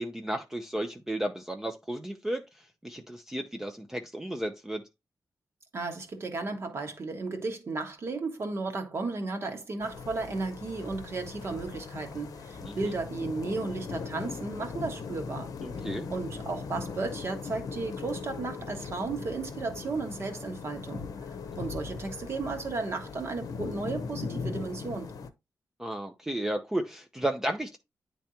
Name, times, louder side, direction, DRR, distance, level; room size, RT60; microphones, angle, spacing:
voice 1, 0.0-4.8 12.6-12.8 15.6-16.1 25.8-27.8, right 1 dB, 10° right, 0.5 m, -33 dB
voice 2, 5.7-15.5 16.1-25.1, right 3 dB, 45° right, 1.4 m, -34 dB
sound 1, 9.8-25.3, left 5 dB, 75° left, 0.7 m, -39 dB
10.0 x 3.4 x 2.8 m
wide cardioid pair, 175°, 6 cm